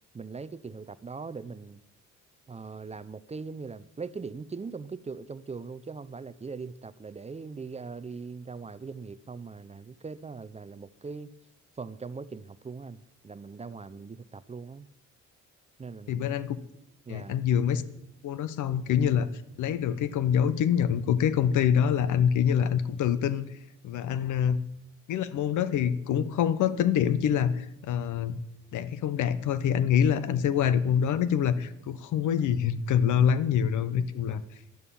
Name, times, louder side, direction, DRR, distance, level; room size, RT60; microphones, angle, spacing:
voice 1, 0.1-1.8 2.5-11.3 11.8-14.9 15.8-16.3 17.1-17.3, right 4 dB, 20° right, 0.6 m, -40 dB
voice 2, 16.1-16.6 17.1-17.8 18.2-19.3 19.6-23.6 23.8-24.6 25.1-28.4 28.7-34.4, left 8 dB, 75° left, 0.9 m, -25 dB
11.0 x 11.0 x 7.0 m
cardioid pair, 90°, 30 cm